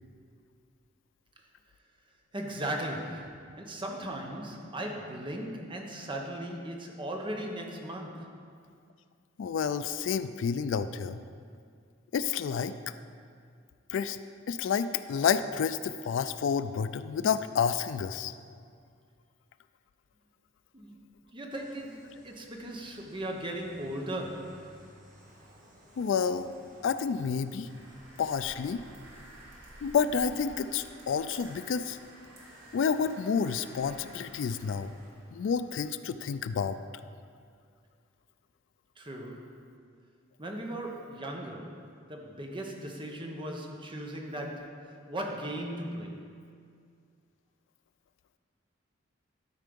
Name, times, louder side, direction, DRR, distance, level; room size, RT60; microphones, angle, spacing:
voice 1, 2.3-8.4 20.7-21.0 21.3-24.7 39.0-39.5 40.4-46.3, right 1 dB, 25° right, 1 dB, 0.9 m, -38 dB
voice 2, 9.4-11.2 12.1-12.7 13.9-14.2 14.5-18.3 26.0-26.5 26.8-27.7 28.2-28.8 29.8-32.0 32.7-34.9 35.3-36.8, left 6 dB, 70° left, 13 dB, 0.3 m, -29 dB
sound 1, 21.5-35.1, equal, 45° right, 1.2 m, -56 dB
sound 2, 27.7-35.9, right 1 dB, 65° right, 1.9 m, -54 dB
12.5 x 4.6 x 5.3 m, 2.2 s
head